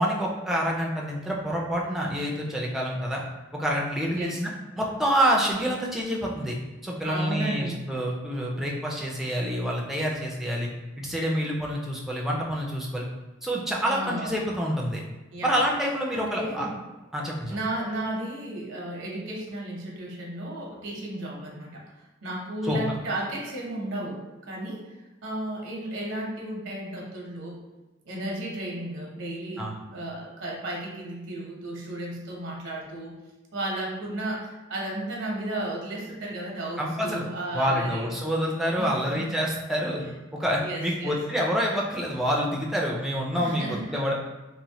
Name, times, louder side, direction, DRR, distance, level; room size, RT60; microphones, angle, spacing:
voice 1, 0.0-3.2 3.5-4.5 4.8-6.6 6.8-10.7 11.0-13.0 13.4-15.0 15.4-16.7 17.1-17.6 22.6-22.8 29.6-29.8 36.8-37.2 37.5-40.0 40.3-44.1, equal, ahead, -3 dB, 0.3 m, -27 dB
voice 2, 4.1-4.4 7.0-7.8 13.9-14.4 15.3-15.6 16.1-16.7 17.5-21.8 22.2-27.6 28.0-33.2 33.5-38.1 38.8-39.3 40.6-41.2 43.3-44.0, right 1 dB, 75° right, -3 dB, 0.7 m, -34 dB
3.0 x 2.0 x 2.7 m, 1.1 s
head